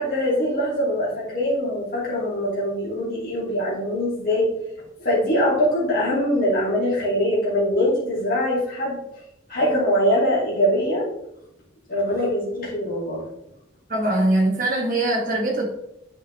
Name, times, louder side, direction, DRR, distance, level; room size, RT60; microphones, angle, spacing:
voice 1, 0.0-4.5 5.0-9.0 9.5-11.0 11.9-13.2, equal, 45° left, -6 dB, 2.6 m, -22 dB
voice 2, 13.9-15.7, right 1 dB, 40° right, -1 dB, 1.8 m, -22 dB
8.5 x 5.4 x 3.3 m, 0.82 s
head